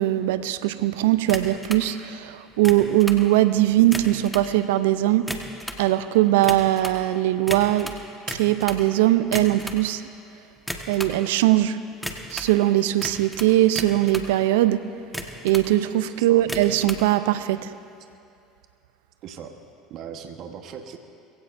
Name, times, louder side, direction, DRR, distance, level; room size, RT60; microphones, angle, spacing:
voice 1, 0.0-5.3 5.8-7.9 8.3-10.0 10.9-11.8 12.3-14.8 15.4-17.7, right 14 dB, 80° right, 13 dB, 0.5 m, -20 dB
sound 1, 1.3-1.9 2.5-3.2 3.8-4.5 5.1-5.9 6.4-7.0 7.5-8.9 9.2-9.8 10.6-11.2 12.0-12.6 13.0-14.3 15.0-15.7 16.4-17.0, equal, ahead, 1.5 m, -34 dB
voice 2, 16.0-16.4 19.2-19.5 19.9-21.0, right 7 dB, 55° right, 5 dB, 1.2 m, -39 dB
22.0 x 16.0 x 2.6 m, 2.4 s
hypercardioid pair, 75°, 0 cm